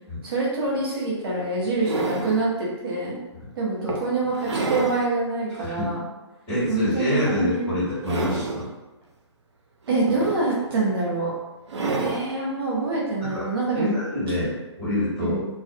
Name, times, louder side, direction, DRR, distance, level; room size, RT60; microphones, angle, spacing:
voice 1, 0.2-3.2 3.5-6.1 6.7-7.8 9.9-11.3 12.0-14.0 15.2-15.5, right 3 dB, 50° right, -6 dB, 1.0 m, -25 dB
sound 1, 0.7-0.8 1.4-2.4 3.1-3.2 3.9-5.1 5.5-5.6 7.2-7.6 7.9-8.7 9.9-10.8 11.7-12.3 13.7-13.8, right 3 dB, 70° right, 0.5 m, -29 dB
voice 2, 6.5-8.6 13.2-13.4 13.7-15.4, left 1 dB, 15° left, -12 dB, 1.3 m, -26 dB
2.5 x 2.1 x 2.6 m, 1.1 s
hypercardioid pair, 150°, 15 cm